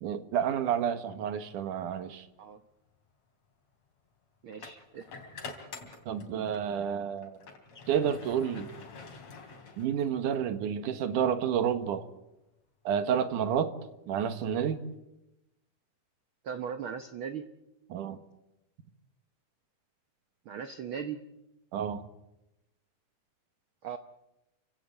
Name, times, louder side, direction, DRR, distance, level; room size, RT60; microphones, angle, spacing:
voice 1, 0.0-2.3 6.1-7.4 7.9-8.7 9.8-12.1 12.8-13.7 14.1-14.8 17.9-18.2 21.7-22.0, right 8 dB, 90° right, 10 dB, 3.0 m, -30 dB
Transport truck roll up door open - close edited, 2.5-2.7 4.5-6.7 7.1-10.3, left 4 dB, 55° left, 4.2 m, -47 dB
voice 2, 4.4-5.1 16.4-17.5 20.5-21.2 23.8-24.0, right 7 dB, 65° right, 9 dB, 1.4 m, -38 dB
29.0 x 17.0 x 8.3 m, 0.93 s
omnidirectional pair, 3.5 m